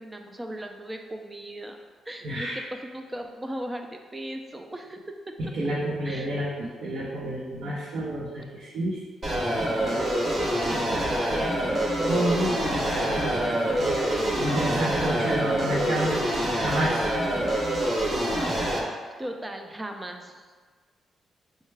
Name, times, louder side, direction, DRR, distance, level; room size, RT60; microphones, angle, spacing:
voice 1, 0.0-1.8 2.1-2.5 2.8-5.3 6.0-6.3 10.2-11.8 19.2-20.5, right 1 dB, 10° right, 4 dB, 0.3 m, -38 dB
voice 2, 2.2-2.6 5.4-9.0 9.8-10.5 12.0-14.1 14.4-17.0, right 1 dB, 70° right, -7 dB, 0.7 m, -30 dB
sound 1, 9.2-18.8, right 1 dB, 30° right, 0.9 m, -26 dB
5.4 x 2.2 x 3.2 m, 1.5 s
cardioid pair, 135°, 0 cm